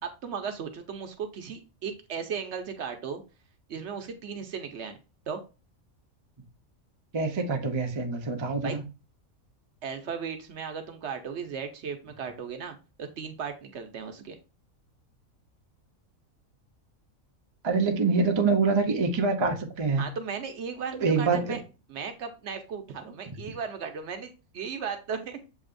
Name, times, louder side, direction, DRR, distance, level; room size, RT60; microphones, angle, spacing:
voice 1, 0.0-3.2 3.7-5.0 5.3-5.4 8.6-8.7 9.8-14.4 20.0-21.6 21.9-25.4, right 6 dB, 65° right, 0.9 m, -36 dB
voice 2, 7.1-8.8 17.6-20.0 21.0-21.6, right 4 dB, 35° right, 0.5 m, -25 dB
7.1 x 2.8 x 2.5 m
omnidirectional pair, 1.4 m